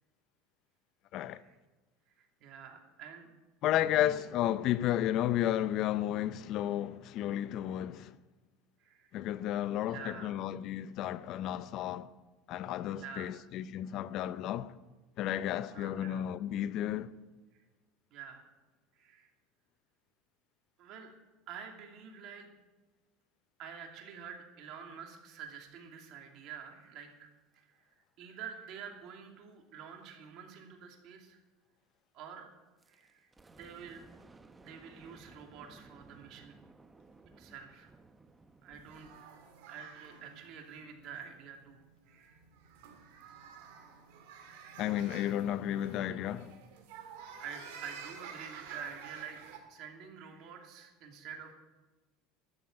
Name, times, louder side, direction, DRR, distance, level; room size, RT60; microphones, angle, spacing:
voice 1, 2.2-3.3 3.9-4.2 8.8-9.2 9.9-10.3 12.9-13.3 15.7-16.2 18.1-18.4 19.0-19.3 20.8-21.1 21.5-22.5 23.6-27.3 27.5-27.6 28.2-31.4 32.1-32.5 32.9-34.1 34.6-36.6 37.4-37.9 38.6-39.1 39.7-41.8 42.1-42.4 47.0-49.4 49.7-51.5, right 7 dB, 55° right, 2.7 m, -48 dB
voice 2, 3.6-8.2 9.1-12.1 12.5-14.7 15.2-17.1 44.8-46.6, left 12 dB, 55° left, 0.6 m, -32 dB
A rain & thunder lightning close & cars sirens loop, 32.8-39.3, right 3 dB, 15° right, 0.9 m, -58 dB
sound 1, 38.7-49.6, right 7 dB, 75° right, 2.6 m, -51 dB
12.5 x 7.6 x 8.8 m
supercardioid pair, 100°, 0 cm